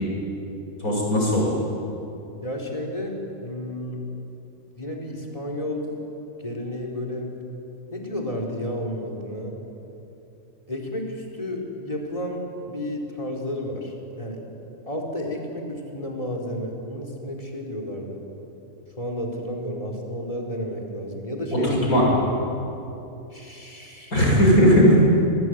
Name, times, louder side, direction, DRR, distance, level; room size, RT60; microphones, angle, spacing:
voice 1, 0.8-1.5 21.5-22.0 24.1-25.0, equal, 85° left, -3 dB, 8.6 m, -17 dB
voice 2, 2.4-4.0 4.7-5.9 6.4-7.3 7.9-9.6 10.7-14.4 14.9-18.2 19.0-21.7 23.3-24.1, left 1 dB, 25° left, 1 dB, 4.2 m, -31 dB
29.0 x 20.0 x 9.5 m, 2.9 s
omnidirectional pair, 1.5 m